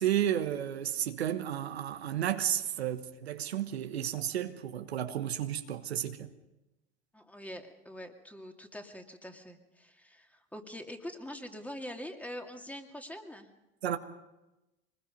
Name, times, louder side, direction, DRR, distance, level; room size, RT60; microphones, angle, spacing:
voice 1, 0.0-6.3 13.8-14.0, right 11 dB, 90° right, 1.3 m, -32 dB
voice 2, 7.1-13.5, equal, 5° left, 2.4 m, -44 dB
24.0 x 21.0 x 5.3 m
hypercardioid pair, 80°, 31 cm